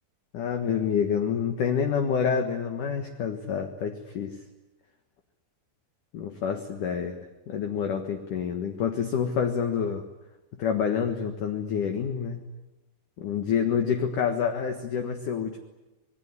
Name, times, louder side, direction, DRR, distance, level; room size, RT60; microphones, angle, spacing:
voice 1, 0.3-4.4 6.1-7.2 7.5-10.0 10.5-12.4 13.2-15.6, left 7 dB, 55° left, 5 dB, 2.5 m, -27 dB
27.0 x 20.5 x 9.8 m, 1.1 s
omnidirectional pair, 5.3 m